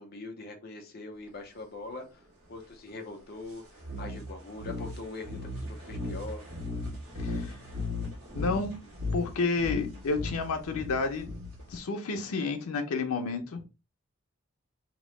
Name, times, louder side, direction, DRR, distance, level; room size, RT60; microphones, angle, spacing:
voice 1, 0.0-2.2 2.5-6.4, left 2 dB, 45° left, 0.6 m, -42 dB
sound 1, 3.8-11.8, left 2 dB, 75° right, 1.2 m, -37 dB
voice 2, 7.2-7.6 8.3-8.8 9.1-11.3 11.7-13.6, left 4 dB, 85° left, 0.6 m, -30 dB
2.9 x 2.1 x 3.1 m
head